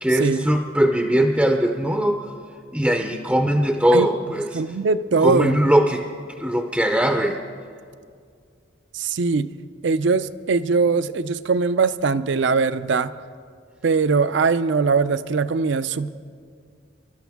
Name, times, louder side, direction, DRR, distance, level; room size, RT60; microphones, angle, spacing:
voice 1, 0.0-2.2 2.7-4.6 5.2-6.0 6.4-7.4, right 1 dB, 5° right, 4 dB, 0.5 m, -20 dB
voice 2, 4.5-5.6 8.9-9.5 9.8-13.1 13.8-16.1, right 4 dB, 60° right, 14 dB, 0.5 m, -21 dB
26.5 x 12.5 x 3.5 m, 2.2 s
head